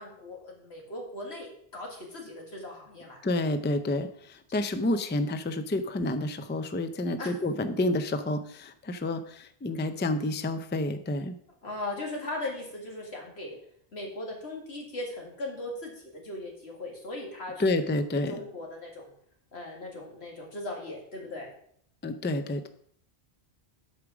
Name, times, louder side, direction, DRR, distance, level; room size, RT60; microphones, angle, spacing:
voice 1, 0.0-3.2 7.2-7.3 11.6-13.6 13.9-17.7 18.3-19.1 19.5-21.5, left 2 dB, 90° left, 0 dB, 2.4 m, -38 dB
voice 2, 3.2-11.4 17.6-18.3 22.0-22.7, left 2 dB, 15° left, 10 dB, 0.3 m, -29 dB
8.5 x 4.9 x 6.0 m, 0.65 s
omnidirectional pair, 1.0 m